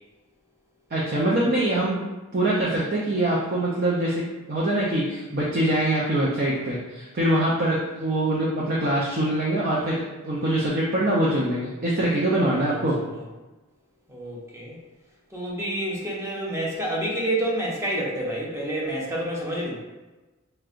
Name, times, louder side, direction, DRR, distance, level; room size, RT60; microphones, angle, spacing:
voice 1, 0.9-2.0 2.3-4.2 4.5-13.0, right 1 dB, 45° right, -5 dB, 0.6 m, -24 dB
voice 2, 12.3-12.8 14.1-14.8 15.3-19.8, right 1 dB, 15° right, -4 dB, 0.8 m, -29 dB
4.5 x 3.1 x 2.5 m, 1.1 s
head